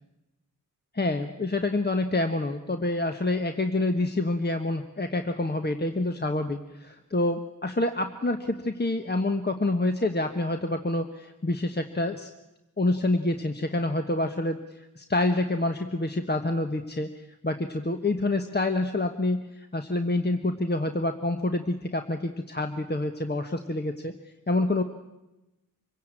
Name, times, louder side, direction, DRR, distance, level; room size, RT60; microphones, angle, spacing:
voice 1, 0.9-12.3 12.8-14.6 15.0-24.1 24.5-24.8, left 2 dB, 30° left, 6 dB, 1.3 m, -27 dB
26.0 x 16.5 x 9.0 m, 0.98 s
wide cardioid pair, 65°, 33 cm